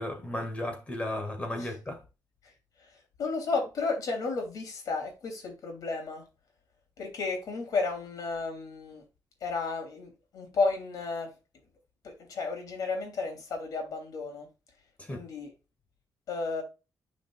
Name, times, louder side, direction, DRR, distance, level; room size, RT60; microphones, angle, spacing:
voice 1, 0.0-2.0 15.0-15.3, left 1 dB, 20° left, 2.0 m, -35 dB
voice 2, 2.8-6.2 7.0-9.0 9.4-11.3 12.0-14.5 15.1-15.5 16.3-16.6, left 4 dB, 65° left, 3.1 m, -33 dB
10.5 x 5.2 x 2.4 m
cardioid pair, 125°, 7 cm